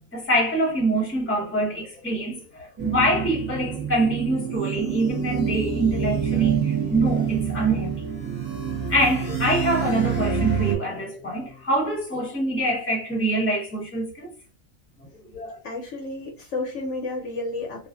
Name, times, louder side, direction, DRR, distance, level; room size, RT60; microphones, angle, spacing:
voice 1, 0.1-8.0 8.9-14.3 15.0-15.6, right 1 dB, 10° left, 0.8 m, -25 dB
sound 1, 2.8-10.8, right 7 dB, 10° right, 0.5 m, -26 dB
voice 2, 15.6-17.9, left 2 dB, 65° left, 0.9 m, -31 dB
2.5 x 2.4 x 2.2 m
omnidirectional pair, 1.5 m